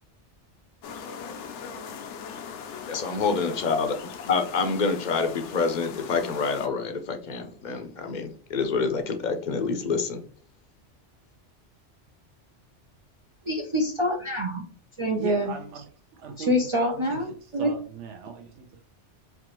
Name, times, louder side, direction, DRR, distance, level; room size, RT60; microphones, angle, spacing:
sound 1, 0.8-6.7, left 6 dB, 80° left, 0.9 m, -40 dB
voice 1, 2.9-3.9 4.3-10.2, left 4 dB, 50° left, 0.6 m, -27 dB
voice 2, 13.4-14.6 15.0-15.5 16.4-17.3 17.5-17.7, equal, 40° right, 0.4 m, -25 dB
voice 3, 15.2-18.9, right 5 dB, 85° right, 0.9 m, -40 dB
4.4 x 2.5 x 2.9 m
omnidirectional pair, 1.2 m